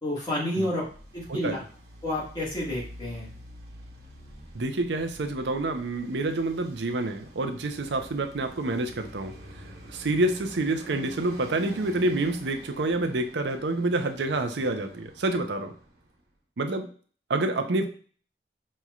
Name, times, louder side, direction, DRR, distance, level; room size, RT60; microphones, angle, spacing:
voice 1, 0.0-0.8 1.1-1.6 2.0-3.3, left 1 dB, 25° left, -5 dB, 1.7 m, -30 dB
Traffic noise roadway noise, 0.7-16.2, equal, 65° right, 1.1 m, -47 dB
voice 2, 4.5-9.3 9.9-15.7 16.6-16.9 17.3-17.9, right 2 dB, 90° right, 6 dB, 0.6 m, -28 dB
5.5 x 3.1 x 2.4 m, 0.43 s
head